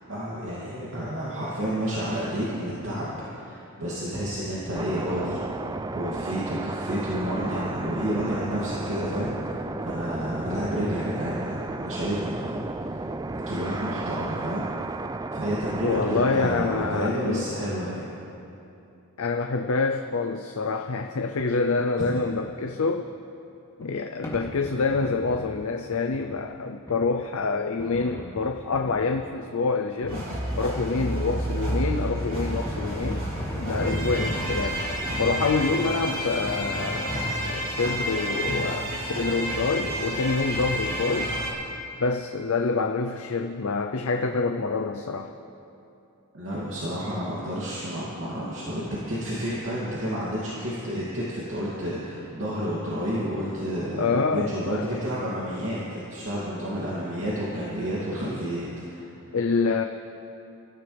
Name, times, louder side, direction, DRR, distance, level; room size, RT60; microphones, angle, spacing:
voice 1, 0.1-5.4 5.9-14.9 15.3-18.1 22.0-22.2 46.3-59.1, equal, 65° right, -8 dB, 2.7 m, -30 dB
sound 1, 4.7-17.1, right 2 dB, 15° right, 0.4 m, -33 dB
voice 2, 15.8-17.5 19.2-23.1 23.8-33.2 33.6-34.9 35.2-41.3 42.0-45.3 54.0-54.8 59.3-59.8, left 4 dB, 75° left, 5 dB, 0.6 m, -26 dB
sound 2, 23.8-23.9 24.2-25.5 25.9-26.3 26.9-27.0 27.8-29.1 30.0-30.9 31.5-35.8, equal, 15° left, 2.9 m, -36 dB
sound 3, 30.1-41.5, equal, 40° right, 3.5 m, -30 dB
25.5 x 14.5 x 3.5 m, 2.8 s
head